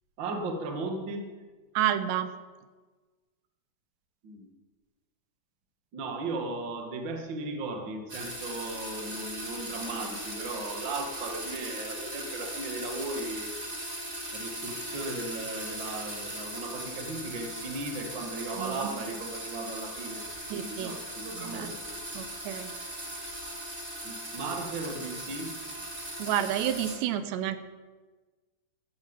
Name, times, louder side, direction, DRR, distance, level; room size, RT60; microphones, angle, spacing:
voice 1, 0.2-1.3 4.2-4.5 5.9-13.5 14.3-20.2 20.5-21.9 24.0-25.6, right 2 dB, 50° right, 3 dB, 1.5 m, -36 dB
voice 2, 1.8-2.3 18.6-18.9 20.5-21.0 21.3-21.7 22.1-22.7 26.2-27.6, right 11 dB, 85° right, 11 dB, 3.0 m, -30 dB
sound 1, 8.1-27.0, right 1 dB, 20° right, 1.5 m, -39 dB
14.5 x 13.5 x 5.3 m, 1.3 s
omnidirectional pair, 4.9 m